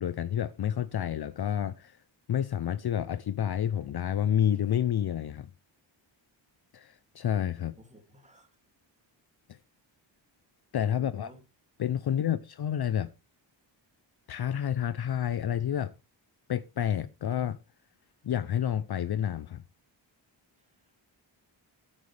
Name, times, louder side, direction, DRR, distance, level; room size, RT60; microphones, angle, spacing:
voice 1, 0.0-2.0 2.3-5.5 6.7-7.7 10.7-11.3 11.8-13.1 14.3-15.9 16.5-17.6 18.2-19.6, left 9 dB, 55° left, 0.6 m, -29 dB
voice 2, 7.8-8.5 10.9-11.4 12.0-12.4, right 1 dB, 15° right, 2.5 m, -53 dB
14.0 x 9.7 x 3.3 m
wide cardioid pair, 150°, 47 cm